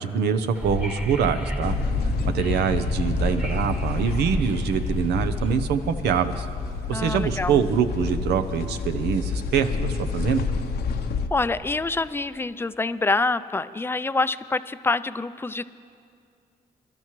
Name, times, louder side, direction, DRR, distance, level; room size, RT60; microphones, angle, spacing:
voice 1, 0.0-1.8 2.3-6.5 6.9-10.5, right 7 dB, 90° right, 9 dB, 0.7 m, -24 dB
Wind / Subway metro underground, 0.5-5.6, equal, 5° right, 1.1 m, -30 dB
sound 1, 1.6-11.3, left 5 dB, 70° left, 0.7 m, -29 dB
voice 2, 6.9-7.6 11.3-15.7, left 3 dB, 15° left, 14 dB, 0.4 m, -26 dB
23.5 x 12.0 x 3.1 m, 2.4 s
cardioid pair, 70°, 17 cm